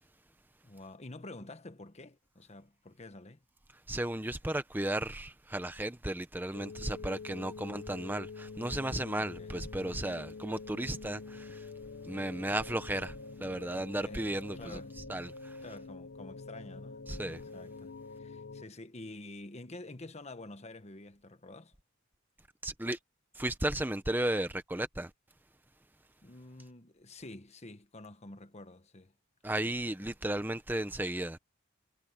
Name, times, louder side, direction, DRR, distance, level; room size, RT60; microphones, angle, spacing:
voice 1, 0.6-3.4 9.1-9.5 14.0-15.0 15.6-21.7 26.2-29.1 29.6-29.7, left 2 dB, 35° left, 1.3 m, -48 dB
voice 2, 3.9-11.7 12.0-14.8 15.1-15.6 17.1-17.4 22.6-23.0 23.3-25.1 29.4-31.4, right 1 dB, 10° right, 0.8 m, -34 dB
sound 1, 6.5-18.6, left 4 dB, 60° left, 1.0 m, -46 dB
head